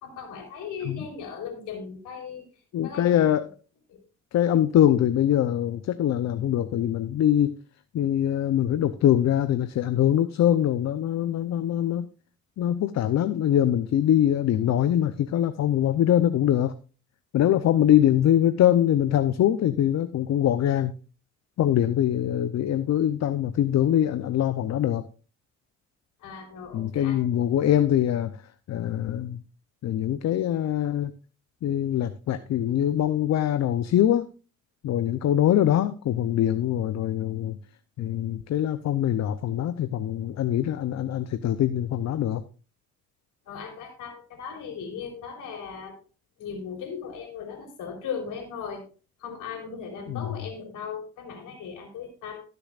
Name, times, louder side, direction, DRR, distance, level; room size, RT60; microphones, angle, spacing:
voice 1, 0.0-2.4 2.8-3.2 3.9-4.0 26.2-27.2 43.5-46.0 46.4-48.8 49.2-52.4, left 6 dB, 85° left, 2 dB, 3.9 m, -37 dB
voice 2, 2.7-3.4 4.3-7.5 7.9-12.1 12.6-16.7 17.3-20.9 21.6-25.0 26.7-28.3 28.7-29.4 29.8-31.1 31.6-34.3 34.8-37.6 38.0-42.4 50.1-50.3, left 11 dB, 60° left, 12 dB, 0.7 m, -23 dB
19.5 x 6.9 x 2.4 m, 0.35 s
cardioid pair, 90°, 30 cm